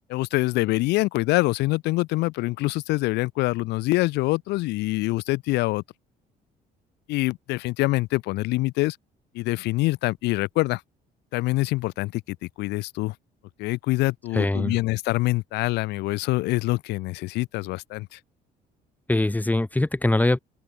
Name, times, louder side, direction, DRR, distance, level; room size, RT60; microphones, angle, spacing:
voice 1, 0.1-5.8 7.1-9.0 9.3-10.8 11.3-13.1 13.6-18.2, left 20 dB, 90° left, 0.9 m, -25 dB
voice 2, 14.3-14.8 19.1-20.4, left 2 dB, 10° left, 3.7 m, -22 dB
open air
cardioid pair, 110°, 17 cm